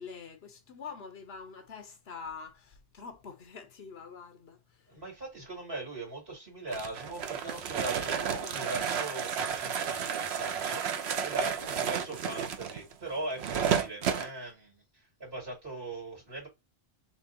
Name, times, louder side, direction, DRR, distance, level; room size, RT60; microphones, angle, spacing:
voice 1, 0.0-4.6 11.5-11.8, left 5 dB, 80° left, 1.2 m, -45 dB
voice 2, 4.9-10.9 11.2-16.5, right 2 dB, 65° right, 2.9 m, -40 dB
sound 1, 6.7-14.3, right 8 dB, 90° right, 1.0 m, -32 dB
4.3 x 3.4 x 2.9 m
omnidirectional pair, 1.1 m